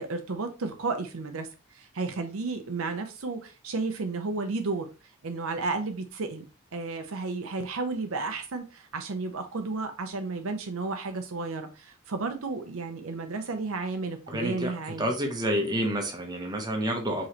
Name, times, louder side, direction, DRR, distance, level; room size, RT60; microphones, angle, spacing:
voice 1, 0.0-4.9 5.2-6.5 6.7-15.1, right 3 dB, 65° right, 7 dB, 0.6 m, -33 dB
voice 2, 14.3-14.7 15.0-17.3, equal, 20° right, 2 dB, 0.9 m, -29 dB
4.9 x 3.1 x 2.9 m, 0.31 s
head